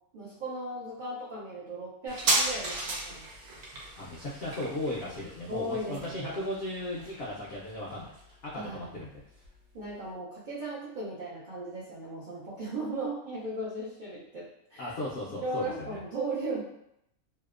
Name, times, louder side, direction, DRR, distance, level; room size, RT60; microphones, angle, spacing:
voice 1, 0.1-3.3 5.5-6.4 8.5-8.9 9.7-14.9 15.4-16.6, right 1 dB, 65° right, -8 dB, 0.4 m, -37 dB
sound 1, 2.1-9.2 9.4-9.5, right 2 dB, 85° right, 1.1 m, -34 dB
voice 2, 4.0-8.2 8.4-9.4 14.8-16.0, left 1 dB, 65° left, -6 dB, 0.6 m, -36 dB
2.7 x 2.0 x 2.4 m, 0.78 s
omnidirectional pair, 1.5 m